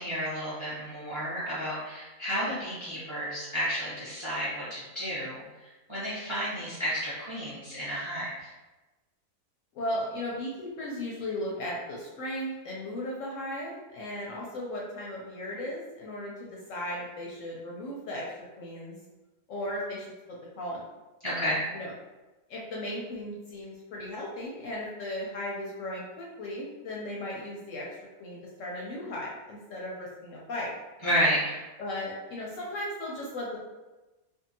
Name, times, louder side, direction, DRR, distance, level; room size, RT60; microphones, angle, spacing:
voice 1, 0.0-5.4 5.9-8.5 21.2-21.6 31.0-31.6, equal, 25° right, -9 dB, 0.7 m, -31 dB
voice 2, 9.7-19.0 19.5-20.8 21.7-21.9 22.5-30.7 31.8-33.6, left 1 dB, 70° left, -4 dB, 0.8 m, -36 dB
2.7 x 2.3 x 2.7 m, 1.1 s
omnidirectional pair, 1.6 m